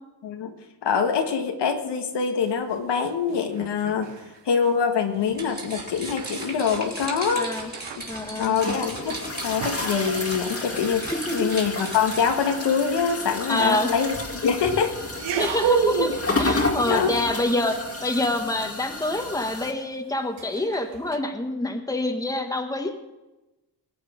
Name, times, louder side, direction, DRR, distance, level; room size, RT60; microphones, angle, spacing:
voice 1, 0.2-0.5 0.8-4.1 4.4-7.5 8.4-14.1 14.4-14.9 16.9-17.2, left 6 dB, 75° left, 5 dB, 1.6 m, -24 dB
sound 1, 2.4-4.8 5.1-5.4 5.7-12.9 13.6-13.8 15.1-21.2, right 8 dB, 85° right, 1.2 m, -33 dB
sound 2, 5.3-12.4, right 2 dB, 20° right, 3.3 m, -37 dB
voice 2, 7.3-7.7 8.1-8.6 11.1-11.5 13.5-13.9 15.4-23.0, left 2 dB, 10° left, 5 dB, 1.4 m, -26 dB
sound 3, 8.0-19.7, left 2 dB, 35° left, 2.0 m, -31 dB
20.0 x 8.7 x 5.0 m, 1.0 s
cardioid pair, 105°, 42 cm